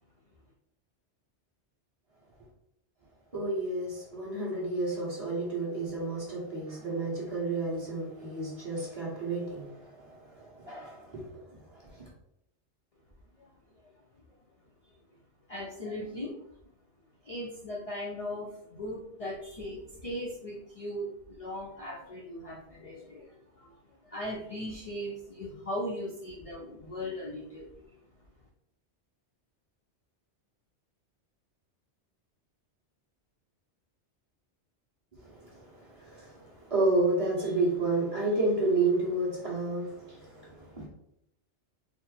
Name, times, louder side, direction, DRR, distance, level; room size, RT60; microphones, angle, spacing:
voice 1, 3.3-12.1 35.1-40.9, right 2 dB, 30° right, 1.3 m, -31 dB
voice 2, 15.5-16.4 17.2-23.7 24.0-27.9, left 1 dB, 45° left, 0.5 m, -38 dB
4.0 x 2.0 x 3.9 m
omnidirectional pair, 1.2 m